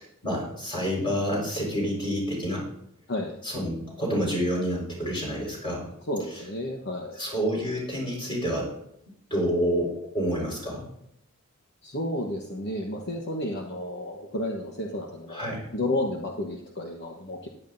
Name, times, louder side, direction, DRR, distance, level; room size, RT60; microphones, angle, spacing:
voice 1, 0.2-2.6 3.4-5.9 7.2-8.7 9.3-10.8 15.3-15.7, equal, 25° left, -3 dB, 4.9 m, -28 dB
voice 2, 6.1-7.2 11.8-15.5 15.7-17.5, left 1 dB, 50° left, 0 dB, 1.2 m, -31 dB
14.5 x 11.0 x 2.7 m, 0.76 s
head